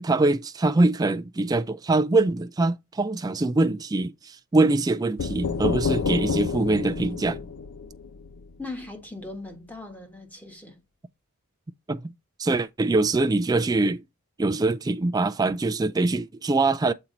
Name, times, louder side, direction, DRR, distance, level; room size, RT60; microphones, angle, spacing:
voice 1, 0.0-7.4 11.9-12.1 12.4-14.0 14.4-16.9, right 2 dB, 15° right, 0.3 m, -23 dB
sound 1, 5.2-8.9, left 5 dB, 75° left, 0.6 m, -29 dB
voice 2, 8.6-10.8, left 2 dB, 5° left, 1.4 m, -39 dB
7.1 x 4.4 x 3.9 m
head